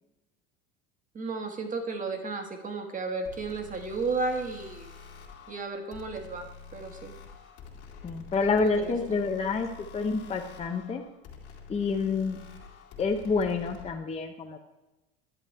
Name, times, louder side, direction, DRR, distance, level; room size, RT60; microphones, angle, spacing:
voice 1, 1.1-4.9 5.5-6.5 6.7-7.1 8.6-8.9, right 3 dB, 25° right, 5 dB, 1.4 m, -33 dB
sound 1, 3.2-13.9, left 6 dB, 55° left, 2.4 m, -47 dB
voice 2, 8.0-9.7 9.9-11.0 11.7-12.4 13.0-14.6, left 4 dB, 20° left, 3 dB, 0.8 m, -28 dB
11.0 x 8.2 x 3.3 m, 1.0 s
supercardioid pair, 110°, 31 cm